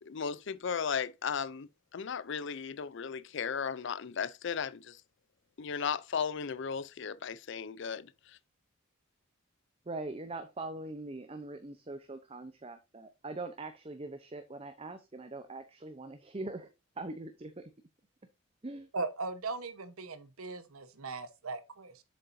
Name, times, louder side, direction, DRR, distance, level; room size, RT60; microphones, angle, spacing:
voice 1, 0.0-5.0 5.6-8.4, left 6 dB, 55° left, 0.5 m, -36 dB
voice 2, 9.9-16.7 17.0-17.7 18.6-18.9, right 2 dB, 25° right, 0.6 m, -42 dB
voice 3, 18.9-22.0, right 3 dB, 85° right, 1.1 m, -38 dB
7.6 x 6.7 x 2.6 m
head